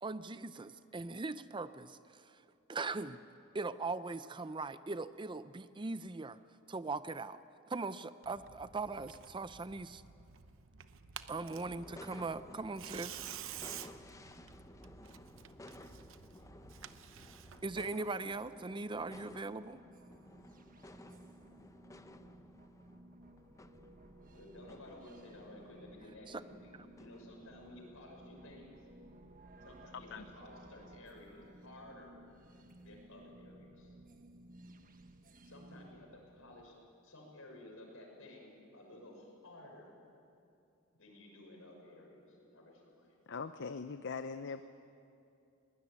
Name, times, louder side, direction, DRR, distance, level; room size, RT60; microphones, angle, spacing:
voice 1, 0.0-2.4 2.7-3.2 3.5-6.4 6.7-7.4 7.7-10.0 11.3-13.2 17.6-19.8 26.3-26.4, right 3 dB, 25° right, 13 dB, 0.5 m, -40 dB
Tearing, 8.2-17.8, right 9 dB, 65° right, 0.9 m, -51 dB
sound 1, 11.5-28.1, left 1 dB, 15° left, 0.7 m, -56 dB
sound 2, 17.9-36.6, right 1 dB, 40° right, 1.4 m, -58 dB
voice 2, 24.3-28.7 29.6-32.1 32.7-33.9 35.4-36.7 37.0-39.9 40.9-43.1, left 1 dB, 75° left, 0 dB, 6.4 m, -54 dB
voice 3, 29.9-30.3 43.3-44.6, left 5 dB, 60° left, 10 dB, 0.7 m, -41 dB
21.5 x 19.5 x 9.6 m, 2.6 s
head